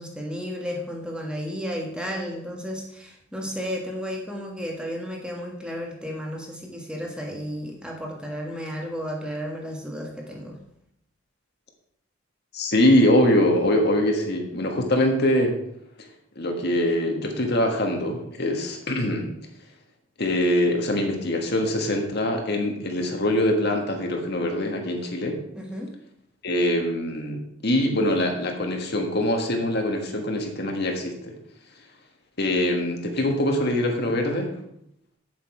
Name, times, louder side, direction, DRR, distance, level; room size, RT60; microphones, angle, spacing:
voice 1, 0.0-10.6 25.5-25.9, equal, 5° right, 0 dB, 1.3 m, -33 dB
voice 2, 12.5-15.5 16.3-19.3 20.2-25.4 26.4-31.4 32.4-34.5, left 1 dB, 50° left, 3 dB, 1.5 m, -23 dB
8.4 x 7.5 x 4.9 m, 0.76 s
head